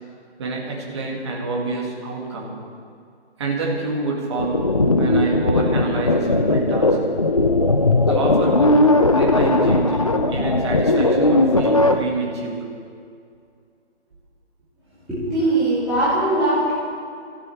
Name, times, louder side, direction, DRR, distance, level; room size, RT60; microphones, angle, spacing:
voice 1, 0.4-2.6 3.4-4.7 5.0-7.0 8.0-8.8 9.1-12.7, right 3 dB, 25° right, -2 dB, 2.1 m, -27 dB
sound 1, 4.4-12.0, left 2 dB, 30° left, 0.6 m, -18 dB
voice 2, 15.1-16.7, right 1 dB, ahead, -18 dB, 3.1 m, -20 dB
19.5 x 13.5 x 4.5 m, 2.3 s
figure-of-eight pair, 160°, 35 cm